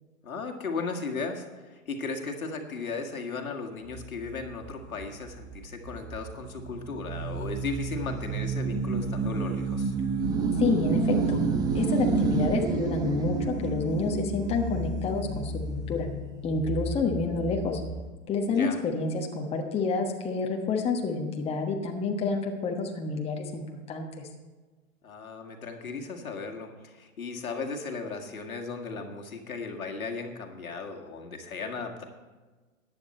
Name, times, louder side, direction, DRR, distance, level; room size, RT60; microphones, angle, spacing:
voice 1, 0.2-9.9 18.4-18.8 25.0-32.0, left 4 dB, 85° left, 3 dB, 2.0 m, -36 dB
sound 1, 3.9-18.1, right 4 dB, 10° right, 0.5 m, -30 dB
voice 2, 10.6-11.4 11.7-16.1 16.4-17.8 18.3-24.3, left 4 dB, 15° left, 1 dB, 1.2 m, -29 dB
14.0 x 9.8 x 4.3 m, 1.3 s
hypercardioid pair, 125°, 41 cm